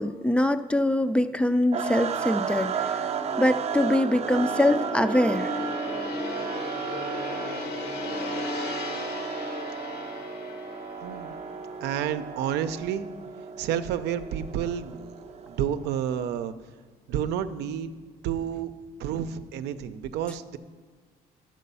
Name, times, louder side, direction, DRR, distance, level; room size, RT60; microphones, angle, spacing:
voice 1, 0.0-3.1 3.4-5.5, left 1 dB, 5° left, 11 dB, 0.4 m, -23 dB
Gong, 1.5-13.9 14.2-14.5, left 3 dB, 70° left, 1.3 m, -37 dB
sound 1, 1.7-15.8, right 7 dB, 40° right, 0.6 m, -34 dB
voice 2, 11.0-11.4 11.8-13.1 13.6-15.1 15.5-16.5 17.1-17.9 18.2-18.7 19.0-20.6, right 9 dB, 80° right, 10 dB, 0.6 m, -30 dB
11.0 x 7.6 x 5.5 m, 1.5 s
cardioid pair, 110°, 17 cm